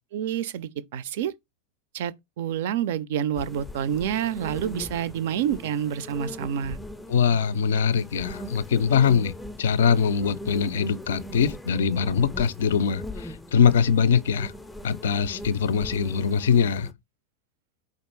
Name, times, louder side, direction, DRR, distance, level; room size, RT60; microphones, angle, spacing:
voice 1, 0.1-1.3 1.9-6.8, right 9 dB, 55° right, 0.4 m, -28 dB
sound 1, 3.3-16.9, left 1 dB, 5° left, 0.4 m, -40 dB
voice 2, 7.1-14.5 14.8-16.9, left 7 dB, 60° left, 0.4 m, -22 dB
4.5 x 2.4 x 4.3 m
figure-of-eight pair, 90°, 0 cm